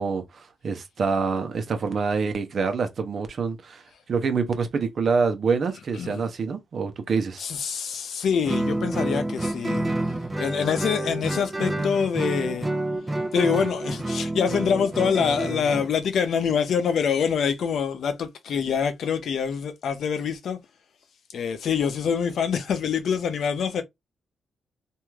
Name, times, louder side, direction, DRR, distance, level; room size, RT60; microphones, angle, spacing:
voice 1, 0.0-7.4, right 5 dB, 55° right, 0.8 m, -26 dB
voice 2, 7.4-9.9 10.4-12.7 13.3-20.6 21.3-23.8, left 7 dB, 70° left, 0.6 m, -25 dB
Guitar, 8.5-15.9, right 1 dB, 20° right, 0.8 m, -28 dB
3.0 x 2.7 x 2.3 m
cardioid pair, 70°, 0 cm